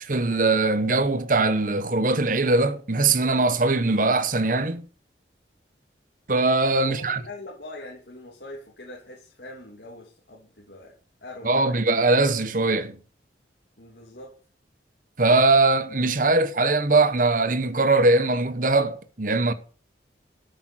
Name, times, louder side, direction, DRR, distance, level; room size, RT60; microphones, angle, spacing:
voice 1, 0.1-4.8 6.3-7.2 11.4-13.0 15.2-19.5, right 3 dB, 45° right, 1.0 m, -21 dB
voice 2, 6.8-10.9 11.2-11.8 13.8-14.3, left 2 dB, 60° left, 2.9 m, -42 dB
13.0 x 8.1 x 6.3 m
head